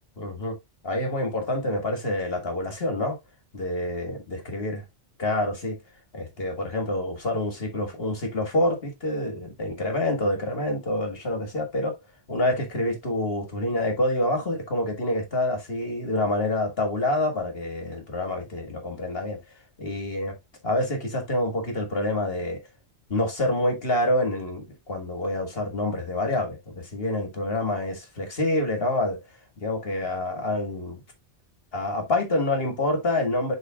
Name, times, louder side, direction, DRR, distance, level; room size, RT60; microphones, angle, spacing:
voice 1, 0.2-0.6 0.8-3.2 3.5-4.8 5.2-5.8 6.1-12.0 12.3-19.4 19.8-20.4 20.6-22.6 23.1-29.2 29.6-31.0 31.7-33.6, left 1 dB, 55° left, 2.0 m, -27 dB
11.0 x 3.9 x 2.3 m
omnidirectional pair, 1.2 m